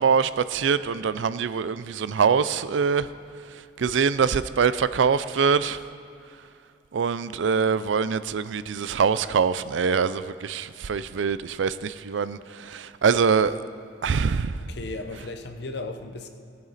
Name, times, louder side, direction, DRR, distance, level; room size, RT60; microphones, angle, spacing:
voice 1, 0.0-3.1 3.8-5.8 6.9-13.6 14.0-14.5, right 6 dB, 85° right, 0.4 m, -24 dB
voice 2, 14.6-16.3, left 2 dB, 60° left, 0.9 m, -35 dB
18.0 x 9.0 x 4.1 m
head